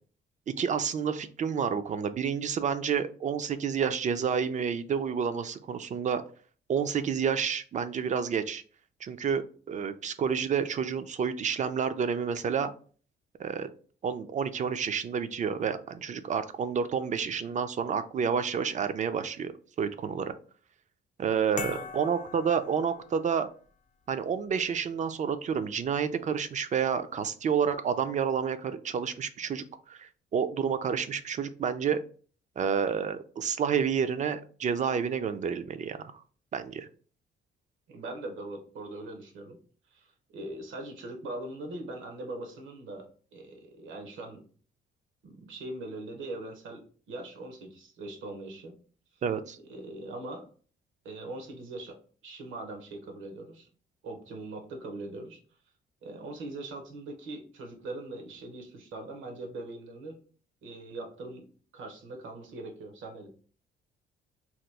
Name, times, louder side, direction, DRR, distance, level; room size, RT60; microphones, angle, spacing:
voice 1, 0.6-6.2 6.7-8.6 9.0-12.7 13.4-13.7 14.0-19.5 19.8-20.3 21.2-23.5 24.1-32.0 32.6-36.0 36.5-36.9 49.2-49.6, right 7 dB, 40° right, 11 dB, 0.4 m, -29 dB
voice 2, 21.5-21.9 37.9-39.6 39.9-44.5 45.2-48.8 49.1-49.2 49.7-50.5 51.0-52.0 52.2-53.7 54.0-55.4 56.0-60.2 60.6-61.5 61.7-63.5, right 2 dB, 80° right, 4 dB, 0.9 m, -41 dB
sound 1, 21.6-23.5, left 6 dB, 40° left, 0.4 m, -41 dB
2.9 x 2.3 x 3.3 m, 0.42 s
cardioid pair, 90°, 20 cm